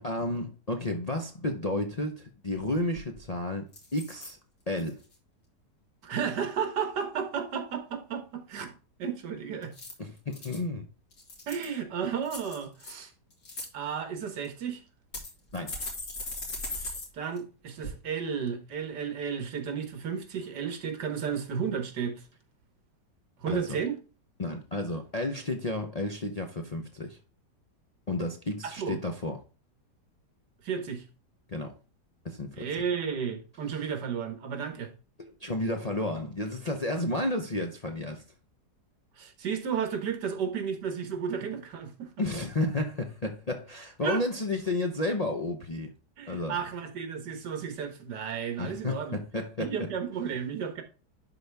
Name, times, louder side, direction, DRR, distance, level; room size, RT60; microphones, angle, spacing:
voice 1, 0.0-3.7 3.9-4.4 4.7-5.0 10.0-10.9 15.5-15.8 23.5-23.8 24.4-27.2 28.1-29.4 31.5-31.7 32.2-32.7 35.2-38.2 42.2-45.9 46.3-46.6 48.6-49.7, left 2 dB, 35° left, 0.7 m, -32 dB
sound 1, 2.9-3.3 3.7-4.3 4.8-5.1 9.6-10.6 11.1-11.8 12.3-12.9 13.3-13.7 14.4-14.5 15.1-17.1 17.4-17.5 17.8-17.9, left 2 dB, 65° left, 3.0 m, -39 dB
voice 2, 6.0-9.7 11.5-13.1 13.7-14.8 16.6-22.2 23.4-24.0 28.6-29.0 30.6-31.0 32.5-34.9 39.2-42.1 44.0-44.2 46.2-49.2 49.7-50.8, right 7 dB, 75° right, 1.9 m, -33 dB
11.0 x 4.1 x 3.4 m
omnidirectional pair, 1.8 m